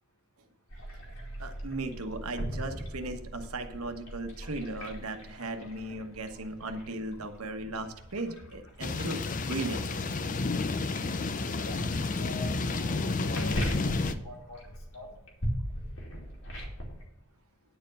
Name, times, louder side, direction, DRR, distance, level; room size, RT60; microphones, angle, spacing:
sound 1, 0.7-17.0, equal, 60° left, 2.5 m, -40 dB
voice 1, 1.4-9.9, right 2 dB, 75° right, 7 dB, 1.1 m, -37 dB
sound 2, 8.8-14.1, left 3 dB, 35° left, 0.5 m, -31 dB
voice 2, 11.2-11.8 12.2-13.6 14.2-14.6 14.9-15.1, left 1 dB, 80° left, 1 dB, 4.2 m, -44 dB
10.0 x 4.6 x 7.5 m, 0.84 s
head